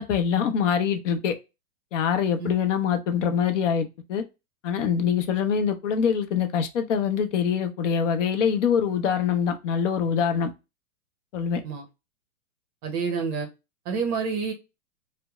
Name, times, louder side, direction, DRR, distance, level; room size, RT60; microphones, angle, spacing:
voice 1, 0.0-1.3 1.9-4.2 4.6-10.5 11.3-11.6, left 7 dB, 55° left, 0.6 m, -24 dB
voice 2, 12.8-13.5 13.9-14.5, right 5 dB, 30° right, 0.7 m, -28 dB
2.7 x 2.1 x 2.3 m
hypercardioid pair, 120°, 44 cm